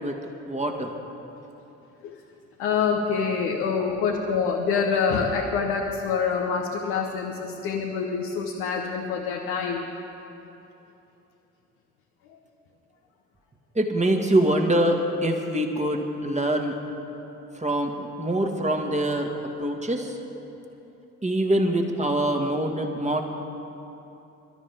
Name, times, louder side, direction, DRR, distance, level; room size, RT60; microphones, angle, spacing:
voice 1, 0.5-0.9 13.8-16.7 17.6-19.3 19.6-20.2 21.2-23.2, right 1 dB, 20° right, 2 dB, 2.0 m, -24 dB
voice 2, 2.6-9.8 12.3-12.4, left 5 dB, 70° left, 0 dB, 1.2 m, -26 dB
25.0 x 13.0 x 3.6 m, 2.9 s
figure-of-eight pair, 45°, 39 cm